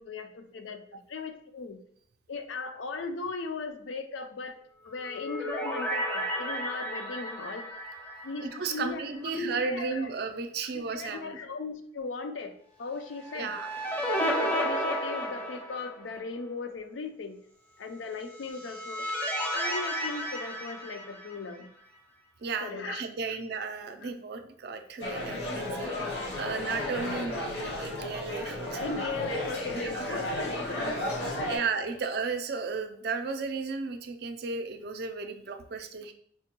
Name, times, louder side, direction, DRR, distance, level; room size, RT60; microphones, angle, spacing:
voice 1, 0.0-1.8 2.3-4.6 4.8-7.7 8.2-10.1 10.7-12.5 12.8-13.5 14.2-17.4 17.8-19.1 19.5-21.7 22.6-23.0 23.3-23.4 24.0-24.1 28.8-30.8 31.4-31.7, left 4 dB, 75° left, 7 dB, 0.4 m, -38 dB
sound 1, 4.8-9.1 9.4-9.5 13.1-16.2 18.2-21.6, equal, 10° left, 0.5 m, -33 dB
voice 2, 8.4-11.4 13.3-13.7 22.4-28.9 29.8-30.2 31.4-36.1, right 4 dB, 55° right, 7 dB, 0.4 m, -34 dB
sound 2, 25.0-31.6, left 1 dB, 60° left, 0.8 m, -33 dB
4.4 x 2.2 x 2.9 m, 0.62 s
head